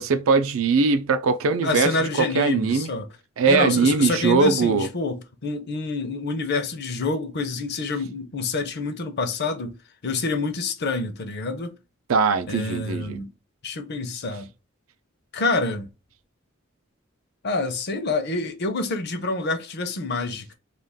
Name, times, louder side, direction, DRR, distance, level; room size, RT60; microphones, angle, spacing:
voice 1, 0.0-1.9 2.2-2.9 3.4-4.9 12.1-13.2, right 4 dB, 85° right, 0.5 m, -21 dB
voice 2, 1.6-3.1 3.4-9.8 10.0-11.8 12.4-13.3 13.6-14.5 15.3-15.9 17.4-20.5, left 3 dB, 55° left, 0.6 m, -27 dB
2.4 x 2.3 x 3.4 m
head